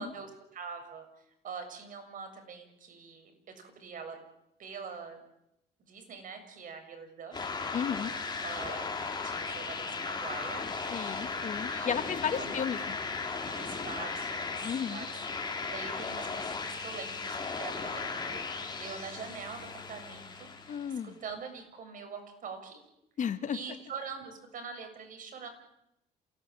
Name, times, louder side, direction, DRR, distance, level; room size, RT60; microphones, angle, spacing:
voice 1, 0.0-4.2 4.6-5.2 5.9-7.5 8.4-11.0 11.6-12.6 13.5-15.2 15.4-22.8 23.5-25.5, right 5 dB, 50° right, 6 dB, 7.2 m, -44 dB
sound 1, 7.3-21.0, left 4 dB, 25° left, 4.7 m, -36 dB
voice 2, 7.7-8.1 10.9-13.0 14.6-15.1 20.7-21.1 23.2-23.6, left 7 dB, 45° left, 11 dB, 1.5 m, -33 dB
28.0 x 18.0 x 9.1 m, 0.82 s
cardioid pair, 110°, 17 cm